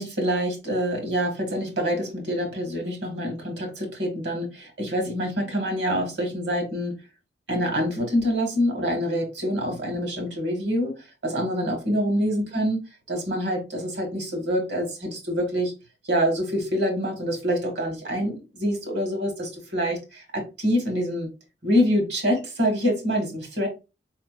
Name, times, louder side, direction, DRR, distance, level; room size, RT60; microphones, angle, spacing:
voice 1, 0.0-7.0 7.5-10.9 11.2-12.8 13.1-15.7 16.0-21.3 21.6-23.7, equal, 65° right, 2.0 m, -26 dB
4.5 x 4.3 x 2.5 m
head